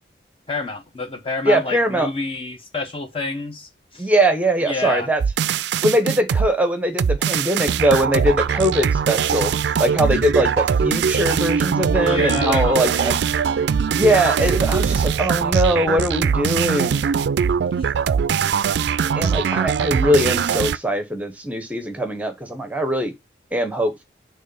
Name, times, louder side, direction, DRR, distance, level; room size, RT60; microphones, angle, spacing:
voice 1, 0.5-4.1 4.6-5.1 12.0-13.2 13.9-14.0 17.8-17.9, left 3 dB, 30° left, 1.0 m, -28 dB
voice 2, 1.4-2.1 4.0-5.2 5.8-9.5 9.8-13.1 14.0-17.1 19.1-23.1 23.5-24.0, equal, 10° right, 0.9 m, -21 dB
sound 1, 5.2-6.5 7.0-20.8, right 7 dB, 65° right, 0.3 m, -21 dB
6.4 x 3.5 x 5.4 m
head